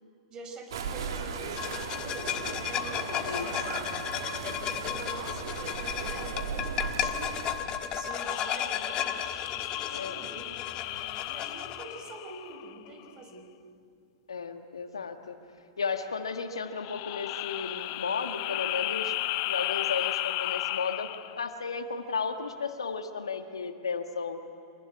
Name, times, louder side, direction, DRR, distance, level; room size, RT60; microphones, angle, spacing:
voice 1, 0.3-3.8 4.6-7.4 7.9-13.5, right 2 dB, 30° right, 4 dB, 4.6 m, -45 dB
sound 1, 0.7-7.6, right 5 dB, 65° right, 2.8 m, -37 dB
sound 2, 1.6-11.8, left 9 dB, 35° left, 1.5 m, -34 dB
sound 3, 8.1-12.9 16.7-21.4, left 18 dB, 50° left, 0.6 m, -34 dB
voice 2, 14.3-15.4 15.8-19.1 19.5-21.1 21.4-24.4, left 5 dB, 80° left, 7 dB, 1.7 m, -34 dB
25.0 x 19.5 x 9.9 m, 2.6 s
hypercardioid pair, 105°, 3 cm